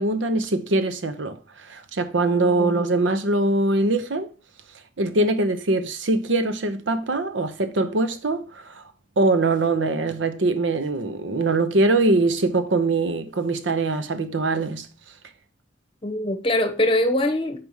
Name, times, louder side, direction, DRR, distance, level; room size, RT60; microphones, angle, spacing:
voice 1, 0.0-4.3 5.0-8.8 9.2-14.9, right 2 dB, 90° right, 0.8 m, -22 dB
voice 2, 2.4-2.7 16.0-17.6, left 1 dB, 30° left, 1.0 m, -23 dB
4.9 x 4.8 x 5.5 m
head